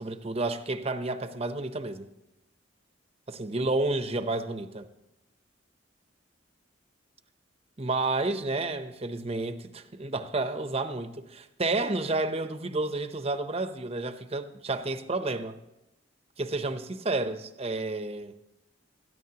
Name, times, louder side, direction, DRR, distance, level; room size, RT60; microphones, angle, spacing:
voice 1, 0.0-2.1 3.3-4.9 7.8-15.6 16.4-18.3, right 2 dB, 30° right, 0.8 m, -30 dB
20.5 x 14.0 x 2.9 m
head